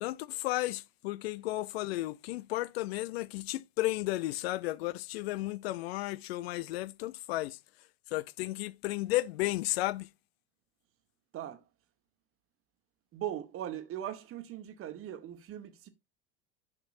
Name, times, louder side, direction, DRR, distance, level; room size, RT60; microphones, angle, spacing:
voice 1, 0.0-7.6 8.1-10.1, left 17 dB, 70° left, 0.5 m, -33 dB
voice 2, 11.3-11.6 13.1-15.9, right 11 dB, 45° right, 1.3 m, -39 dB
9.8 x 5.9 x 2.5 m
hypercardioid pair, 80°, 31 cm